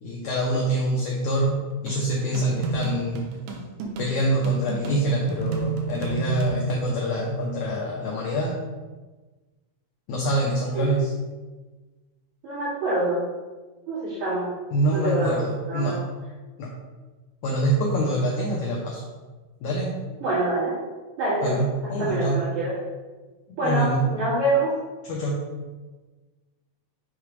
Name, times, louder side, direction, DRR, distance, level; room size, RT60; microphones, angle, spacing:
voice 1, 0.0-3.3 4.0-8.6 10.1-11.1 14.7-16.0 16.6-16.7 17.4-19.0 19.6-20.0 21.4-22.5 23.5-24.1 25.0-25.4, right 1 dB, 85° left, -2 dB, 1.7 m, -25 dB
sound 1, 1.9-6.9, right 5 dB, 80° right, 2.4 m, -32 dB
voice 2, 12.4-13.3 13.9-14.5 14.9-15.4 15.7-16.0 20.2-20.7 21.2-22.7 23.6-24.7, right 1 dB, 60° right, -9 dB, 3.0 m, -25 dB
6.4 x 3.2 x 5.0 m, 1.3 s
omnidirectional pair, 4.4 m